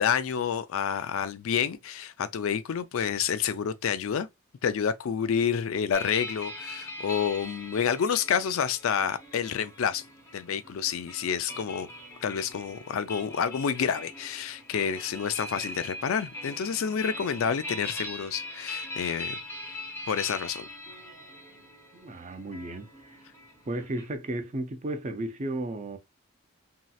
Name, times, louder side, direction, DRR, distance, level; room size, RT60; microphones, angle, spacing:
voice 1, 0.0-4.3 4.6-10.0 10.3-11.9 12.2-19.4 20.1-20.7, left 7 dB, 75° left, 0.4 m, -29 dB
sound 1, 5.9-24.1, left 2 dB, 10° left, 0.7 m, -41 dB
voice 2, 21.9-23.2 23.7-26.0, right 1 dB, 35° right, 0.4 m, -34 dB
3.1 x 2.8 x 2.3 m
head